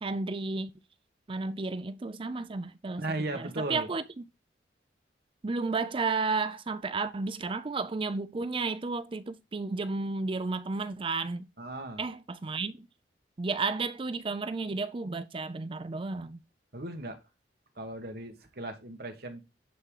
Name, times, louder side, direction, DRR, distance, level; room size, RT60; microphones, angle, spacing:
voice 1, 0.0-0.7 1.3-3.0 3.3-4.0 5.4-11.5 12.0-12.9 13.4-16.4, right 3 dB, 30° right, 0.4 m, -32 dB
voice 2, 3.0-3.9 11.6-12.0 16.7-17.2 17.7-19.4, right 2 dB, 60° right, 1.6 m, -36 dB
11.0 x 3.8 x 4.8 m
head